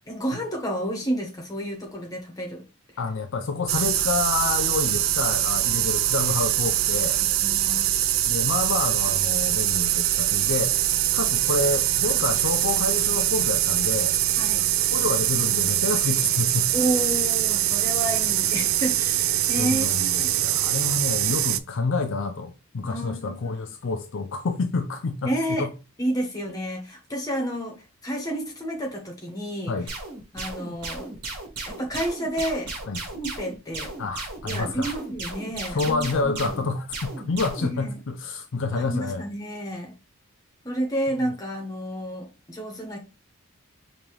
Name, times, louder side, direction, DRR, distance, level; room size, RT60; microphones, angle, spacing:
voice 1, 0.1-2.6 7.2-7.9 14.4-14.7 16.7-20.3 22.8-23.5 25.2-25.7 26.0-29.7 30.3-31.1 31.7-32.7 33.1-33.9 34.4-36.4 37.6-38.0 38.7-39.9 40.6-43.0, right 1 dB, 15° left, 1.2 m, -30 dB
voice 2, 3.0-7.2 8.2-10.8 11.1-14.2 14.9-16.8 19.6-25.7 29.7-29.9 32.9-33.0 34.0-34.9 35.7-39.2, left 3 dB, 60° left, 0.5 m, -28 dB
sound 1, 3.7-21.6, right 13 dB, 65° right, 0.4 m, -23 dB
sound 2, 29.9-37.7, right 2 dB, 80° right, 1.4 m, -35 dB
5.1 x 2.9 x 3.1 m
head